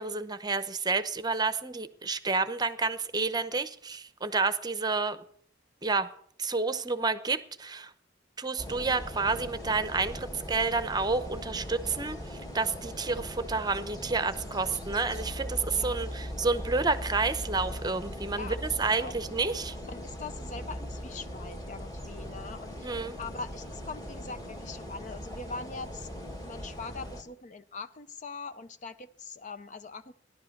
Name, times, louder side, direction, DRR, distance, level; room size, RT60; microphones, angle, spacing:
voice 1, 0.0-5.2 5.8-6.1 6.4-7.9 8.4-19.8 22.8-23.2, right 4 dB, 20° right, 12 dB, 0.8 m, -30 dB
sound 1, 8.6-27.2, equal, 20° left, 2.1 m, -40 dB
voice 2, 19.9-30.1, left 4 dB, 40° left, 12 dB, 0.6 m, -42 dB
16.0 x 11.0 x 6.6 m, 0.64 s
head